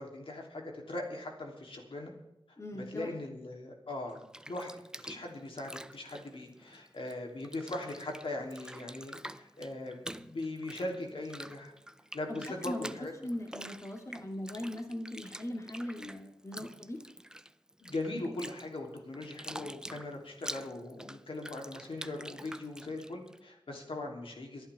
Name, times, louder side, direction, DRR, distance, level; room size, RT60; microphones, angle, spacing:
voice 1, 0.0-2.1 2.7-4.7 5.0-11.7 12.1-13.1 16.5-16.6 17.8-24.7, left 2 dB, 80° left, 1 dB, 3.2 m, -40 dB
voice 2, 2.6-3.1 12.3-17.0, left 1 dB, 35° left, 3 dB, 2.2 m, -40 dB
Bathtub (filling or washing), 4.1-7.1 7.4-23.4, right 1 dB, 10° right, 0.5 m, -47 dB
24.5 x 11.0 x 3.5 m, 0.85 s
wide cardioid pair, 80°, 9 cm